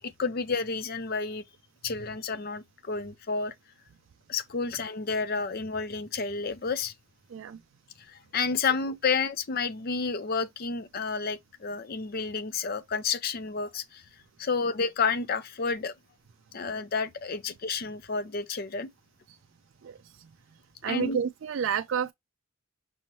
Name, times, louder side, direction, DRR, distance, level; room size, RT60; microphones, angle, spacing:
voice 1, 0.0-1.4 1.8-3.5 4.3-6.9 8.1-14.0 14.4-15.9 16.5-18.9 20.9-21.2, left 5 dB, 45° left, 0.5 m, -30 dB
voice 2, 19.8-20.3 20.8-22.1, right 7 dB, 60° right, 0.3 m, -30 dB
6.1 x 2.9 x 3.0 m
head